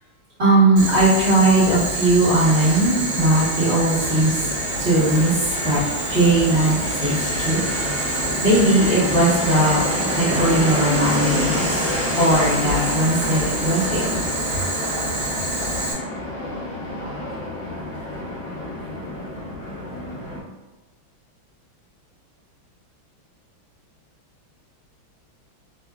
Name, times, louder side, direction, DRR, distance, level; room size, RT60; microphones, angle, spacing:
voice 1, 0.4-4.3 4.8-5.8 6.1-7.6 8.0-9.8 10.2-14.2, right 2 dB, 35° right, -11 dB, 1.5 m, -19 dB
Boiling, 0.8-15.9, right 2 dB, 80° right, 1.5 m, -27 dB
Fixed-wing aircraft airplane, 2.4-20.4, left 1 dB, 65° left, 1.3 m, -29 dB
3.4 x 2.7 x 2.3 m, 1.1 s
omnidirectional pair, 2.2 m